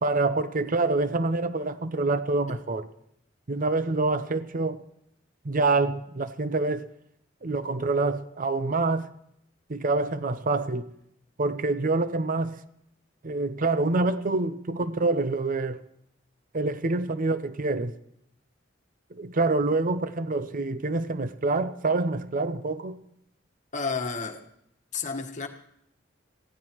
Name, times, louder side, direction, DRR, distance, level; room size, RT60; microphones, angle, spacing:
voice 1, 0.0-2.8 3.5-4.8 5.4-6.9 7.4-9.1 9.7-10.9 11.4-12.6 13.2-15.8 16.5-17.9 19.1-23.0, right 3 dB, 45° right, 0.7 m, -26 dB
voice 2, 23.7-24.5 24.9-25.5, left 4 dB, 40° left, 1.4 m, -31 dB
24.5 x 16.0 x 3.1 m
head